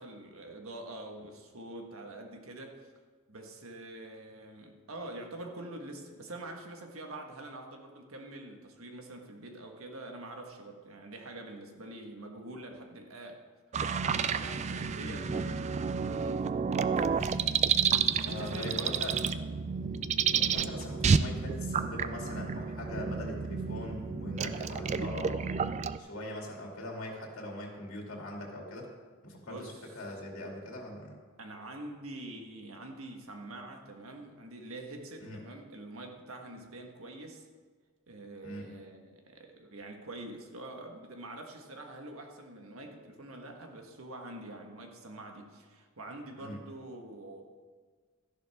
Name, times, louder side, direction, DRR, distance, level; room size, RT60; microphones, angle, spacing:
voice 1, 0.0-2.9 3.3-13.4 14.3-16.5 18.2-19.4 29.4-29.9 31.4-37.5 38.1-47.4, right 1 dB, 75° right, 3 dB, 1.5 m, -45 dB
sound 1, 13.7-26.0, right 6 dB, 30° right, 0.3 m, -30 dB
voice 2, 15.0-15.5 18.2-19.2 20.0-25.5 26.0-28.9 29.2-31.2 35.2-35.4 38.4-38.7 46.4-46.6, left 1 dB, 70° left, -1 dB, 2.5 m, -41 dB
13.0 x 11.0 x 3.5 m, 1.5 s
head